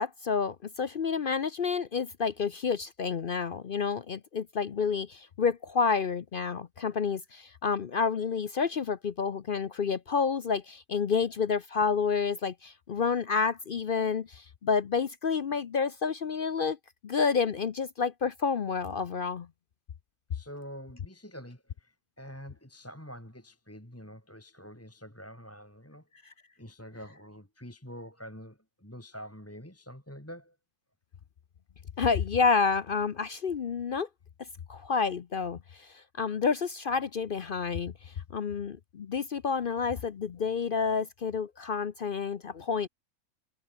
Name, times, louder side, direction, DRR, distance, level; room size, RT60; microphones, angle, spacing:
voice 1, 0.0-16.8 17.0-19.5 32.0-34.1 34.7-42.9, left 5 dB, 50° left, 0.6 m, -29 dB
voice 2, 20.3-30.6, equal, 10° left, 3.1 m, -46 dB
omnidirectional pair, 1.7 m